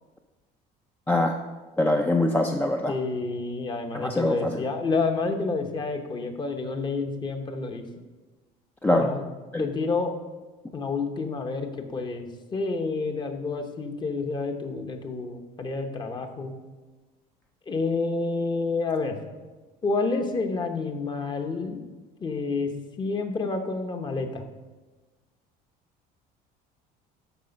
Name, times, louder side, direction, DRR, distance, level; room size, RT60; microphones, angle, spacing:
voice 1, 1.8-2.9 3.9-4.6 8.8-9.1 9.5-9.7, left 1 dB, 10° left, 3 dB, 0.5 m, -23 dB
voice 2, 2.9-7.8 8.9-9.2 9.6-10.1 10.7-16.5 17.7-19.2 19.8-21.8 22.2-22.7 23.0-24.4, left 3 dB, 25° left, 5 dB, 1.0 m, -29 dB
13.0 x 4.9 x 5.3 m, 1.3 s
cardioid pair, 135°, 17 cm